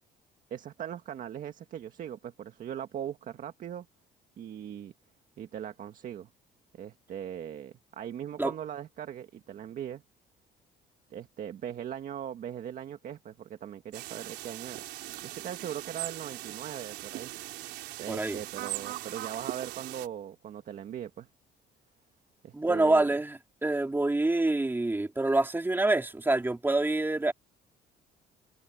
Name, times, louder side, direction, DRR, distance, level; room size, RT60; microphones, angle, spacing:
voice 1, 0.5-3.9 4.4-4.9 5.4-6.3 6.7-10.0 11.1-14.8 15.2-17.6 18.0-21.3 22.4-23.1, right 9 dB, 55° right, 1.7 m, -40 dB
sound 1, 13.9-20.1, right 17 dB, 85° right, 4.0 m, -40 dB
voice 2, 18.1-18.4 22.5-27.3, right 2 dB, 10° right, 3.2 m, -26 dB
open air
cardioid pair, 110°, 17 cm